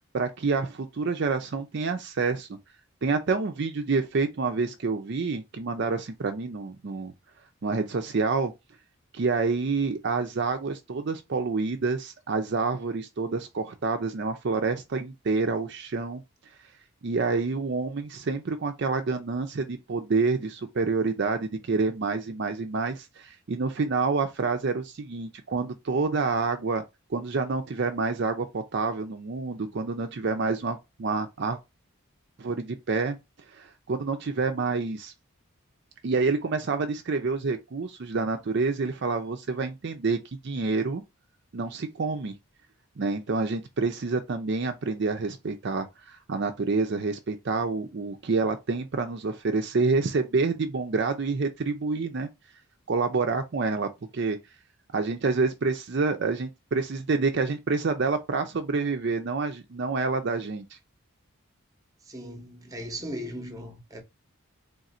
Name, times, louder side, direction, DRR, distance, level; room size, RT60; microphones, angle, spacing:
voice 1, 0.1-2.5 3.0-7.1 7.6-8.5 9.1-16.2 17.0-26.8 27.1-31.6 32.4-33.2 33.5-35.1 36.0-40.2 40.4-41.0 41.5-42.3 43.0-52.3 52.9-54.4 54.9-60.7, right 4 dB, 50° right, 0.4 m, -28 dB
voice 2, 62.0-64.0, equal, 15° right, 0.7 m, -38 dB
3.4 x 2.5 x 4.2 m
head